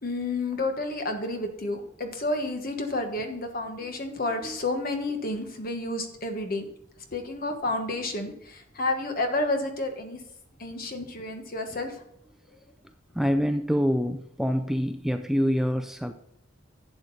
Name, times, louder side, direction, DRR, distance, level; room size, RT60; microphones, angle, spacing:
voice 1, 0.0-6.7 7.1-10.2 10.6-12.0, left 2 dB, 45° left, 5 dB, 1.4 m, -30 dB
voice 2, 13.1-16.1, equal, ahead, 7 dB, 0.3 m, -26 dB
11.5 x 7.7 x 4.1 m, 0.74 s
head